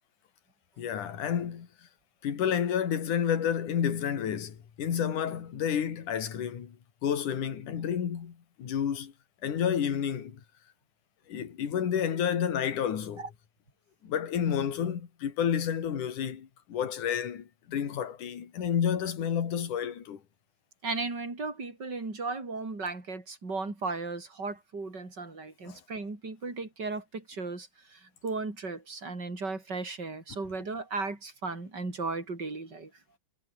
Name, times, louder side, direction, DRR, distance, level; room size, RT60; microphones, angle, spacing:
voice 1, 0.8-1.7 2.2-6.8 7.0-9.1 9.4-10.4 11.3-13.2 14.0-20.2 25.7-25.8, left 8 dB, 45° left, 3.7 m, -30 dB
voice 2, 20.8-32.9, right 3 dB, 20° right, 6.4 m, -36 dB
omnidirectional pair, 5.4 m